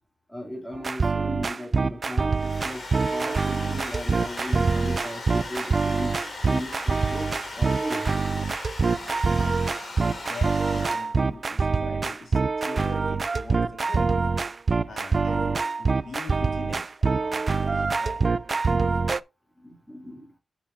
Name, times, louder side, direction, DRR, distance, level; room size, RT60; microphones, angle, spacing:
voice 1, 0.3-6.2 6.5-8.1 14.8-14.9 19.6-20.3, left 1 dB, 5° left, 2.7 m, -37 dB
sound 1, 0.7-19.2, right 4 dB, 40° right, 0.3 m, -25 dB
Domestic sounds home sounds, 2.1-11.3, left 2 dB, 50° left, 2.4 m, -38 dB
voice 2, 9.4-14.1 14.9-18.2, left 3 dB, 75° left, 2.3 m, -42 dB
11.5 x 5.8 x 2.6 m
wide cardioid pair, 100°, 0 cm